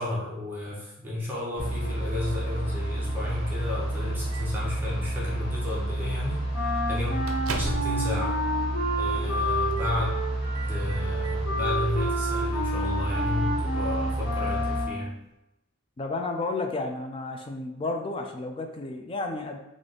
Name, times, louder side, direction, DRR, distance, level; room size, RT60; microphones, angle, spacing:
voice 1, 0.0-7.2 7.5-8.3 9.0-10.1 10.6-15.1, left 2 dB, 10° right, -6 dB, 0.7 m, -32 dB
sound 1, 1.6-14.9, right 1 dB, 70° left, 1.3 m, -30 dB
Microwave oven, 3.3-4.7 5.6-5.8 6.2-6.3 6.7-8.1 8.4-8.5 9.1-9.4 9.7-10.0 10.4-11.4, right 3 dB, 80° right, 0.5 m, -40 dB
Wind instrument woodwind instrument, 6.5-15.1, equal, 45° left, 1.4 m, -30 dB
voice 2, 16.0-19.6, left 3 dB, 25° left, 4 dB, 0.3 m, -32 dB
3.3 x 2.5 x 3.9 m, 0.90 s
head